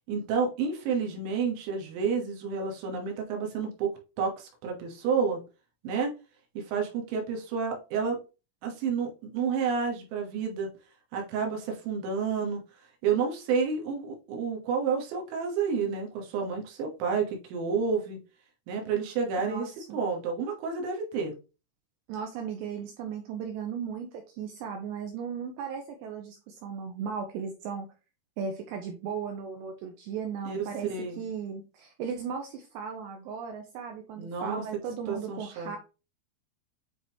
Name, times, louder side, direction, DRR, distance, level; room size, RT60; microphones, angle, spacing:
voice 1, 0.1-3.9 4.2-5.4 5.8-6.1 6.5-8.2 8.6-10.7 11.1-12.6 13.0-18.2 18.7-21.3 30.4-31.2 34.2-34.6 35.1-35.7, right 5 dB, 70° right, 1 dB, 3.3 m, -30 dB
voice 2, 19.4-20.0 22.1-27.9 28.4-35.8, right 6 dB, 90° right, 3 dB, 2.5 m, -36 dB
9.4 x 3.8 x 2.9 m, 0.32 s
omnidirectional pair, 5.9 m